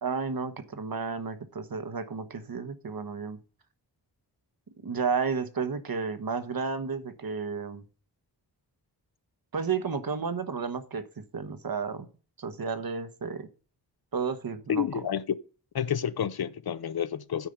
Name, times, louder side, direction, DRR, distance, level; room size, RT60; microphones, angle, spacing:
voice 1, 0.0-3.4 4.8-7.8 9.5-12.1 12.4-13.5 14.1-15.1, right 5 dB, 55° right, 1.2 m, -32 dB
voice 2, 14.7-15.2 15.7-17.5, left 8 dB, 60° left, 0.7 m, -30 dB
9.1 x 5.0 x 6.8 m
wide cardioid pair, 80°, 42 cm